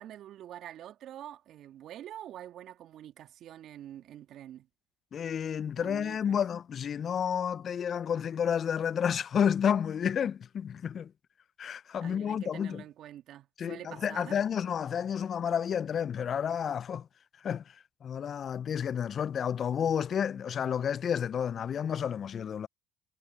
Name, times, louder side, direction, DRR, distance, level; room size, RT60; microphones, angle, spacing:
voice 1, 0.0-4.7 5.8-6.4 12.0-14.4, right 11 dB, 60° right, 2.1 m, -46 dB
voice 2, 5.1-11.1 11.6-12.8 13.6-17.1 17.4-17.6 18.0-22.7, left 8 dB, 45° left, 0.3 m, -30 dB
hypercardioid pair, 65°, 0 cm